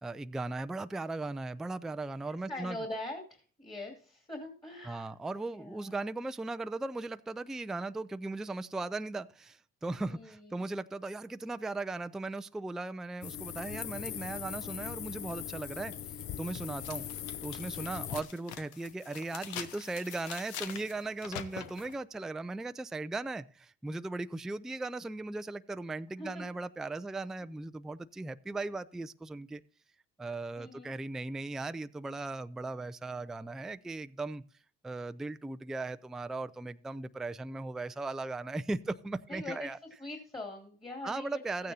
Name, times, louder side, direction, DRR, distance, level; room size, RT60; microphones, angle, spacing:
voice 1, 0.0-2.8 4.8-15.9 16.4-17.0 17.4-29.6 30.2-34.4 34.8-39.8 41.0-41.7, right 2 dB, ahead, 0.3 m, -38 dB
voice 2, 2.3-5.1 5.5-5.9 10.1-10.6 26.2-26.4 30.6-30.9 39.3-39.7 40.0-41.3 41.6-41.7, left 2 dB, 15° left, 2.5 m, -42 dB
sound 1, 13.2-18.2, left 10 dB, 50° left, 0.6 m, -40 dB
sound 2, 15.9-16.0 16.5-21.9, left 9 dB, 80° left, 1.0 m, -45 dB
14.0 x 9.1 x 2.8 m
supercardioid pair, 75°, 29 cm